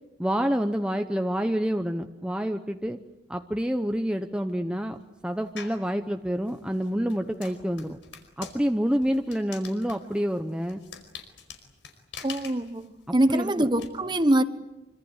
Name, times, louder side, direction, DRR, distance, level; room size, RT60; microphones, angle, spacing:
voice 1, 0.2-3.0 3.3-5.0 5.2-8.0 8.4-10.8 13.3-13.7, equal, 5° right, 0.9 m, -28 dB
sound 1, 5.6-5.9 6.4-13.9, left 7 dB, 85° left, 4.9 m, -45 dB
voice 2, 12.2-14.4, right 1 dB, 25° right, 1.3 m, -24 dB
26.0 x 25.5 x 8.2 m
head